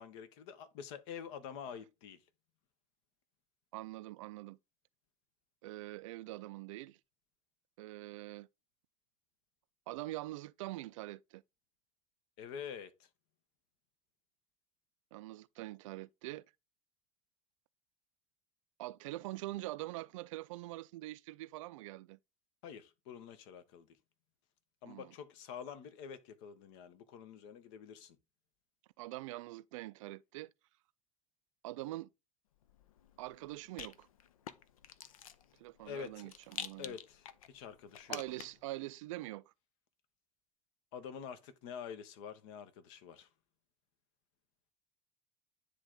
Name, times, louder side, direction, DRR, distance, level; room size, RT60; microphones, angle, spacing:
voice 1, 0.0-2.2 12.4-13.1 22.6-23.9 24.8-28.2 35.8-36.3 36.8-38.2 40.9-43.3, left 7 dB, 60° left, 1.0 m, -47 dB
voice 2, 3.7-4.6 5.6-7.0 7.8-8.5 9.9-11.4 15.1-16.4 18.8-22.2 24.9-25.1 29.0-30.5 31.6-32.1 33.2-34.1 35.6-36.9 38.1-39.4, right 18 dB, 65° right, 0.4 m, -44 dB
Rattle, 32.6-38.7, left 9 dB, 75° left, 0.6 m, -49 dB
9.8 x 3.4 x 3.8 m
figure-of-eight pair, 70°, 18 cm